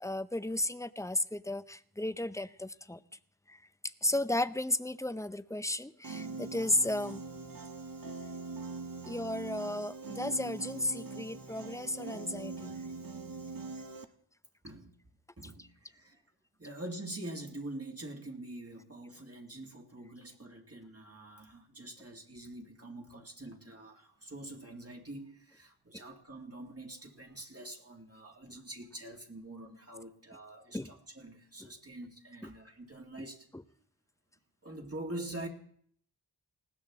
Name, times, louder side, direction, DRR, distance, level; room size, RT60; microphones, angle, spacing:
voice 1, 0.0-3.0 3.5-3.6 4.0-7.2 9.1-12.7 15.6-15.7 30.7-30.9, left 1 dB, 10° left, 0.6 m, -34 dB
Piano, 6.0-14.1, right 3 dB, 55° right, 1.3 m, -42 dB
voice 2, 14.6-15.0 15.4-16.2 16.6-33.5 34.6-35.5, right 1 dB, 35° right, 2.2 m, -45 dB
19.5 x 17.0 x 3.7 m
wide cardioid pair, 70°, 41 cm